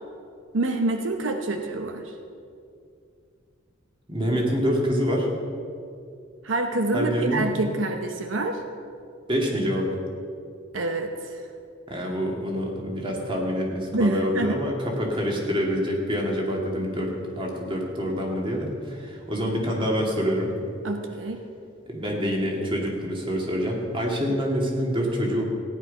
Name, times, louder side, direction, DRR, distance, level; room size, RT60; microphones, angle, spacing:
voice 1, 0.5-2.1 6.4-8.6 10.7-11.4 13.9-14.6 20.8-21.4, right 2 dB, 80° right, 5 dB, 0.9 m, -27 dB
voice 2, 4.1-5.3 6.9-7.5 9.3-9.9 11.9-20.5 21.9-25.4, equal, 25° right, -1 dB, 2.3 m, -26 dB
16.0 x 10.5 x 5.5 m, 2.4 s
head